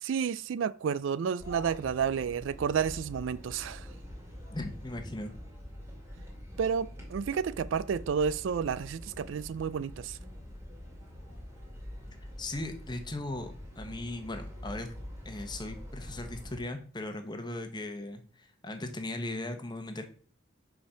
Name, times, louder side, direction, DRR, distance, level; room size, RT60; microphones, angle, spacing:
voice 1, 0.0-3.9 6.6-10.2, right 7 dB, 70° right, 0.3 m, -31 dB
sound 1, 1.4-16.6, equal, 15° right, 2.2 m, -45 dB
voice 2, 4.5-5.3 12.4-14.9 15.2-20.0, left 2 dB, 20° left, 1.0 m, -38 dB
5.4 x 5.1 x 5.6 m
head